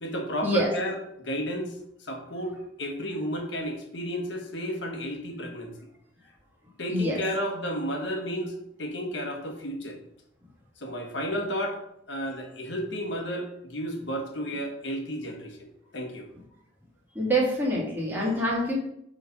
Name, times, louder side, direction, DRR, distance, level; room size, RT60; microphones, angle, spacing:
voice 1, 0.0-5.7 6.8-8.5 8.8-10.0 10.8-11.8 12.1-16.3, equal, 70° left, 1 dB, 1.5 m, -32 dB
voice 2, 17.2-18.8, right 1 dB, 10° right, -5 dB, 2.0 m, -25 dB
7.0 x 3.8 x 5.3 m, 0.75 s
head